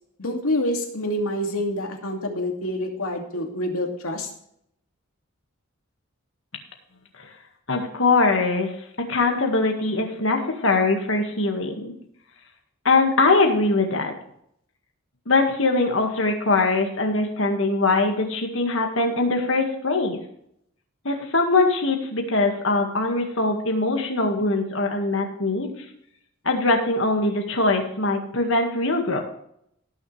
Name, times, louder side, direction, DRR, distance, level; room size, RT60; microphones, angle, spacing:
voice 1, 0.2-4.3, left 1 dB, 75° left, 2 dB, 2.5 m, -27 dB
voice 2, 7.7-11.9 12.8-14.1 15.3-20.2 21.0-25.7 26.4-29.2, left 3 dB, 60° left, 2 dB, 1.9 m, -22 dB
18.0 x 7.1 x 3.4 m, 0.71 s
head